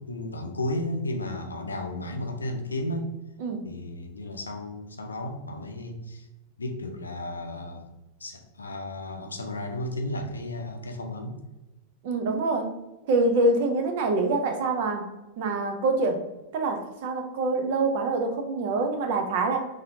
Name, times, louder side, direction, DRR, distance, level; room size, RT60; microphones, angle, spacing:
voice 1, 0.0-3.1 3.6-6.3 6.6-7.9 8.2-11.4, left 1 dB, 75° left, 4 dB, 0.5 m, -33 dB
voice 2, 12.0-12.7 13.1-15.1 15.4-16.2 16.5-19.6, right 2 dB, 50° right, 5 dB, 0.5 m, -25 dB
4.1 x 2.6 x 2.7 m, 1.0 s
figure-of-eight pair, 90°, 0 cm